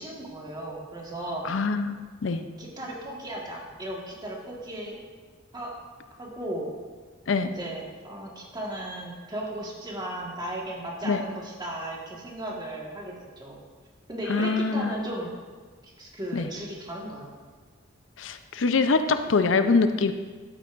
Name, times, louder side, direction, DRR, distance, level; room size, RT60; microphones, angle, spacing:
voice 1, 0.0-1.5 2.6-5.0 5.5-5.8 6.2-6.7 7.5-13.6 14.1-15.3 15.8-17.3, right 1 dB, 20° right, -2 dB, 1.5 m, -36 dB
voice 2, 1.4-2.4 7.3-7.5 11.0-11.2 14.3-15.0 16.3-16.5 18.2-20.1, left 4 dB, 70° left, 9 dB, 0.5 m, -24 dB
12.0 x 8.1 x 2.5 m, 1.5 s
head